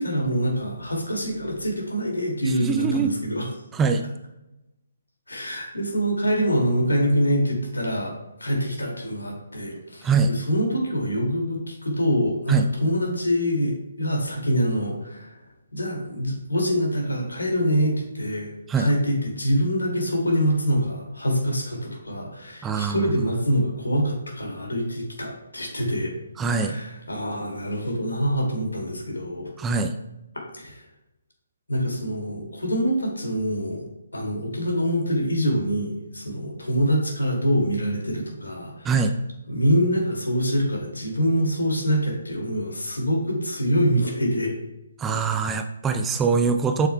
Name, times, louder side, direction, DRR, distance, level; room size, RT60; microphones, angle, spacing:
voice 1, 0.0-3.4 5.3-10.1 10.5-12.6 12.8-15.4 15.7-18.5 18.8-26.1 26.5-29.5 30.3-30.8 31.7-33.8 34.1-38.9 39.5-44.6, equal, 80° left, 0 dB, 2.3 m, -25 dB
voice 2, 2.4-3.2 3.7-4.1 10.0-10.3 12.5-12.7 18.7-18.9 22.6-23.1 26.4-26.8 29.6-30.0 38.8-39.2 45.0-46.9, right 5 dB, 10° right, 6 dB, 0.4 m, -23 dB
7.9 x 6.5 x 2.3 m, 0.94 s
figure-of-eight pair, 140°, 0 cm